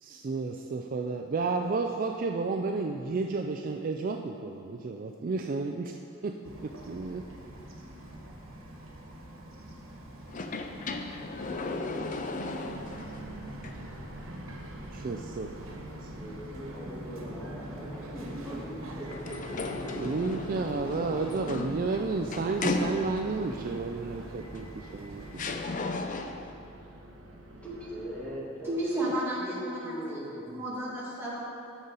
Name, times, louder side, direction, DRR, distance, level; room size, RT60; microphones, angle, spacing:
voice 1, 0.0-5.9 6.2-7.2 14.9-15.5 20.0-25.6, right 4 dB, 45° right, 4 dB, 0.3 m, -32 dB
Bird vocalization bird call bird song, 6.4-25.5, right 1 dB, 90° right, 1.3 m, -46 dB
sound 1, 10.3-13.2 13.6-13.7 19.1-23.4 24.6-24.7 25.4-26.5, left 3 dB, 40° left, 0.5 m, -35 dB
sound 2, 12.6-28.4, right 1 dB, 65° right, 0.9 m, -45 dB
voice 2, 16.1-20.9 27.6-30.5, equal, 5° left, -7 dB, 1.8 m, -41 dB
voice 3, 28.6-30.2 30.4-31.4, right 1 dB, 10° right, -9 dB, 2.4 m, -32 dB
14.0 x 5.4 x 4.0 m, 2.6 s
head